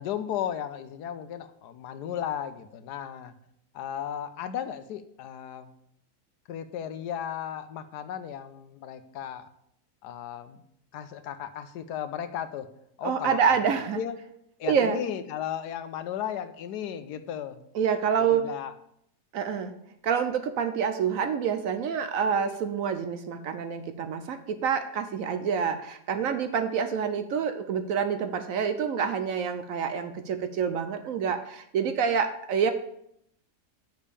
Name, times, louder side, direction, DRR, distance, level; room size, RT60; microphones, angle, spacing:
voice 1, 0.0-3.3 3.7-5.7 6.5-9.5 10.0-10.6 10.9-12.7 13.0-13.7 13.9-14.2 14.6-17.6 18.2-18.7, left 9 dB, 80° left, 11 dB, 1.2 m, -35 dB
voice 2, 13.0-14.0 14.6-15.0 17.7-18.5 19.3-19.7 20.0-32.7, right 7 dB, 70° right, 9 dB, 0.9 m, -27 dB
6.5 x 5.1 x 6.9 m, 0.73 s
omnidirectional pair, 1.7 m